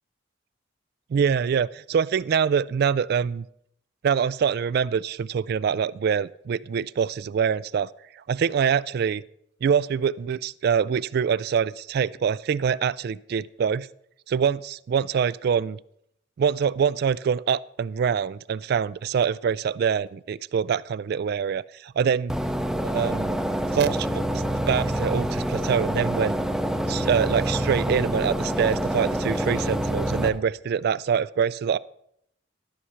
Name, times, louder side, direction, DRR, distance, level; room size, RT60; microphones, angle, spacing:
voice 1, 1.1-3.4 4.0-7.9 8.3-9.2 9.6-13.9 14.3-15.8 16.4-22.3 22.8-23.4 23.7-26.4 26.9-31.8, right 7 dB, 55° right, 20 dB, 0.3 m, -25 dB
sound 1, 22.3-30.3, right 1 dB, 5° right, 0.7 m, -26 dB
13.0 x 6.2 x 5.7 m, 0.72 s
head